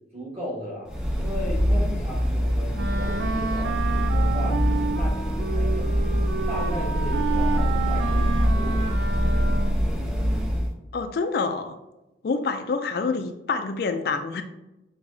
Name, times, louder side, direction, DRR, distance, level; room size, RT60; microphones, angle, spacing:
voice 1, 0.1-5.9 6.5-9.3, equal, 35° right, -4 dB, 1.4 m, -36 dB
sound 1, 0.9-10.7, equal, 5° right, 0.5 m, -24 dB
Wind instrument woodwind instrument, 2.8-9.9, right 4 dB, 80° right, 0.4 m, -30 dB
voice 2, 10.9-11.7 12.2-14.4, left 4 dB, 55° left, 8 dB, 0.3 m, -27 dB
6.3 x 2.9 x 2.6 m, 0.97 s
head